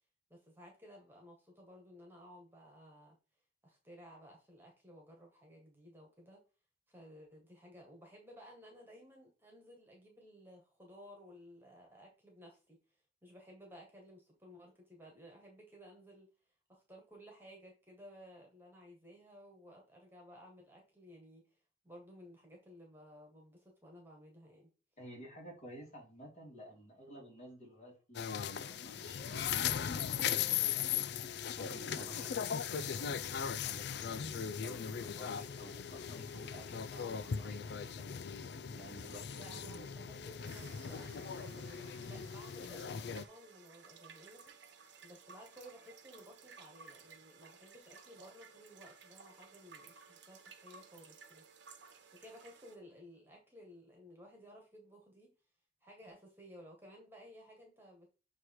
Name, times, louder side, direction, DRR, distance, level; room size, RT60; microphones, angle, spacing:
voice 1, 0.3-3.2 3.6-6.4 6.9-12.8 13.2-16.3 16.7-21.5 21.8-24.7 32.0-32.3 39.4-51.4 52.1-55.3 55.8-58.1, equal, 10° right, 0 dB, 1.7 m, -56 dB
voice 2, 25.0-31.1 31.6-33.2 33.6-38.1 38.7-39.8, right 1 dB, 40° left, -1 dB, 2.9 m, -53 dB
sound 1, 28.1-43.2, left 8 dB, 60° left, 0.4 m, -38 dB
sound 2, 40.4-52.8, right 5 dB, 70° right, 1.1 m, -57 dB
7.5 x 3.2 x 4.7 m, 0.34 s
head